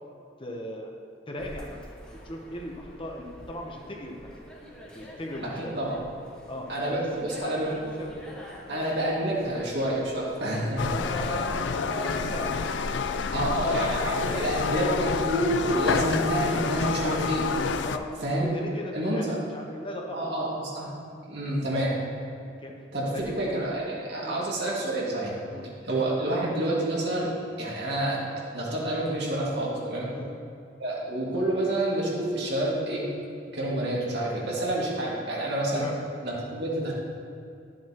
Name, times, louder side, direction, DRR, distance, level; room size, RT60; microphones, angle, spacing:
voice 1, 0.4-0.9 1.3-1.8 2.2-4.3 4.9-5.7 6.5-7.6 8.0-8.2 10.9-12.5 13.3-15.3 17.8-18.1 18.5-20.2 22.6-22.7 23.0-23.4 24.2-24.4 25.5-25.7 30.1-30.3 35.7-36.0, left 1 dB, 30° left, 0 dB, 0.9 m, -38 dB
sound 1, 1.4-14.4, equal, 5° left, 1.7 m, -44 dB
voice 2, 5.6-6.0 6.7-7.7 8.7-10.9 12.1-12.2 13.3-17.5 18.2-18.5 18.9-19.4 20.1-20.9 21.3-21.9 22.9-23.1 23.4-25.3 25.8-27.3 27.6-28.2 28.5-30.1 30.8-33.0 33.5-35.8 36.2-36.9, right 1 dB, 70° right, -5 dB, 2.2 m, -28 dB
sound 2, 10.8-18.0, left 5 dB, 75° left, 0.4 m, -28 dB
11.5 x 7.5 x 3.0 m, 2.5 s
head